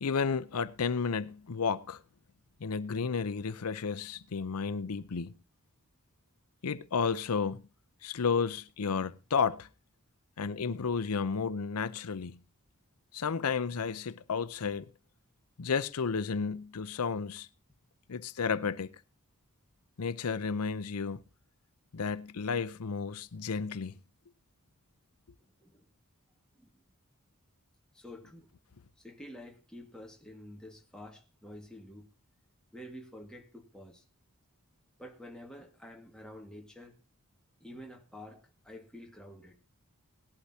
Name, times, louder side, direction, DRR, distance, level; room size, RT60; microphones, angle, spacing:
voice 1, 0.0-2.0 2.6-5.3 6.6-7.6 8.0-9.7 10.4-12.4 13.1-14.9 15.6-17.5 18.1-18.9 20.0-21.2 21.9-23.9, left 5 dB, 85° left, 0.6 m, -32 dB
voice 2, 25.4-25.9 26.5-26.8 27.9-28.5 29.0-32.1 32.7-34.0 35.0-37.0 37.6-39.6, left 1 dB, 5° left, 1.7 m, -49 dB
18.5 x 11.5 x 2.8 m
head